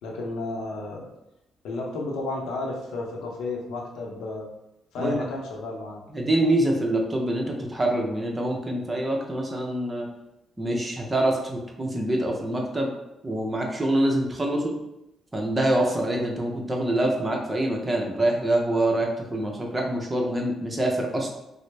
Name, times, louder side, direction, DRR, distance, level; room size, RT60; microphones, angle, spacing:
voice 1, 0.0-1.1 1.6-4.5 4.9-6.0, left 2 dB, 85° left, -1 dB, 0.7 m, -32 dB
voice 2, 6.1-10.1 10.6-12.9 13.2-14.8 15.3-21.3, right 1 dB, 25° right, 0 dB, 0.7 m, -25 dB
3.8 x 2.0 x 3.3 m, 0.88 s
cardioid pair, 80°, 0 cm